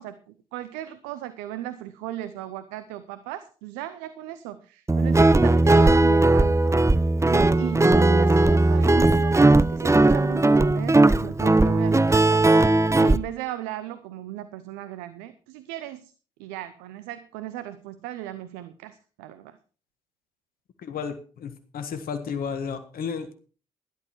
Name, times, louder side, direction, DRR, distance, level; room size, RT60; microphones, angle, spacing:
voice 1, 0.0-12.4 13.0-16.1 16.4-19.6, right 13 dB, 85° right, 12 dB, 0.7 m, -37 dB
Guitar, 4.9-13.2, right 2 dB, 20° right, 0.8 m, -18 dB
voice 2, 20.8-23.4, left 6 dB, 65° left, 9 dB, 1.7 m, -33 dB
13.0 x 11.0 x 4.5 m, 0.37 s
hypercardioid pair, 45°, 16 cm